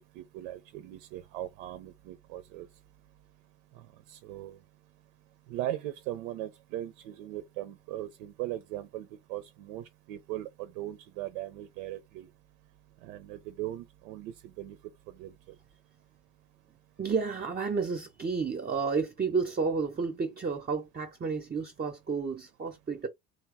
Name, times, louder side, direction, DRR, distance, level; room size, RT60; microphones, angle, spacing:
voice 1, 0.2-2.7 3.8-4.6 5.5-12.3 13.0-14.8 15.2-15.6, right 14 dB, 80° right, 0.6 m, -39 dB
voice 2, 17.0-23.1, right 5 dB, 25° right, 0.7 m, -31 dB
3.0 x 2.0 x 3.4 m
hypercardioid pair, 60°, 39 cm